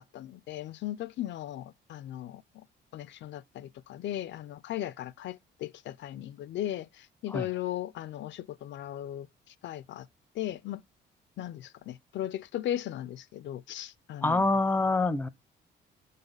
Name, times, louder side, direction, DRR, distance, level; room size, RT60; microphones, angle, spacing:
voice 1, 0.0-2.6 2.9-10.1 10.4-10.8 11.4-14.4, left 12 dB, 65° left, 0.4 m, -37 dB
voice 2, 14.2-15.3, left 2 dB, 10° left, 0.5 m, -25 dB
5.3 x 4.0 x 5.2 m
cardioid pair, 90°, 20 cm